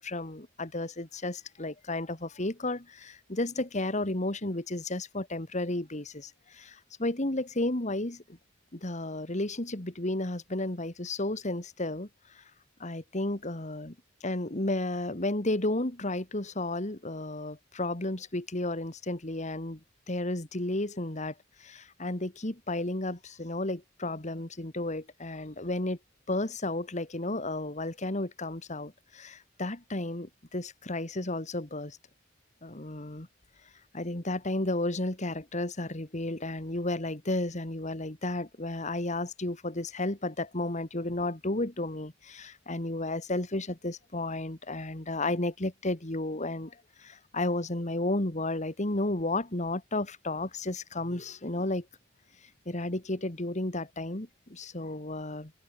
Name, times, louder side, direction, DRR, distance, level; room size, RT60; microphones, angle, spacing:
voice 1, 0.0-8.4 8.7-12.1 12.3-12.4 12.8-14.0 14.2-19.8 20.1-21.3 21.6-26.0 26.3-32.0 32.6-33.3 33.9-51.9 52.7-55.5, left 2 dB, 40° left, 2.3 m, -33 dB
open air
head